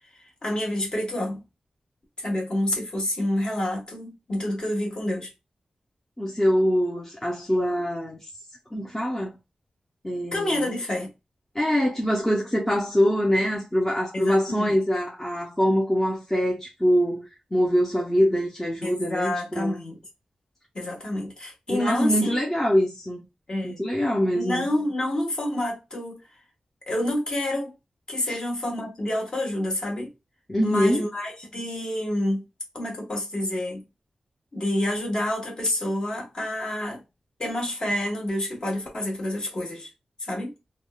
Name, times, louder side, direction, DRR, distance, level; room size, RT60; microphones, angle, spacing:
voice 1, 0.1-1.4 2.2-5.3 10.3-11.1 14.1-14.7 18.8-20.0 20.7-22.4 23.5-23.8 24.3-26.2 26.9-27.7 28.1-30.1 30.6-32.4 32.7-33.8 34.5-37.0 37.4-39.9 40.2-40.5, left 1 dB, 40° left, 1.2 m, -28 dB
voice 2, 6.2-8.2 8.7-9.3 10.0-10.6 11.5-19.8 21.7-23.2 23.6-24.6 28.3-28.4 30.5-31.1, equal, 10° left, 0.6 m, -24 dB
3.5 x 2.1 x 2.2 m
wide cardioid pair, 140°, 2 cm